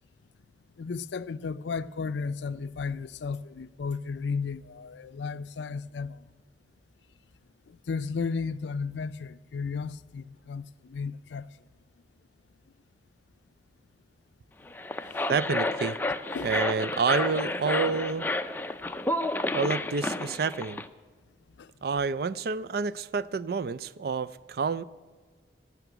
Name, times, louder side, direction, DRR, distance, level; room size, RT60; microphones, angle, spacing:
voice 1, 0.8-6.3 7.7-11.5 15.1-15.3 16.3-16.5 21.6-21.7, left 5 dB, 80° left, 0.4 m, -34 dB
sound 1, 14.7-20.9, left 2 dB, 10° left, 0.4 m, -31 dB
voice 2, 15.3-16.0 16.4-18.3 19.5-20.8 21.8-24.8, right 4 dB, 55° right, 0.4 m, -29 dB
17.0 x 5.9 x 9.1 m
head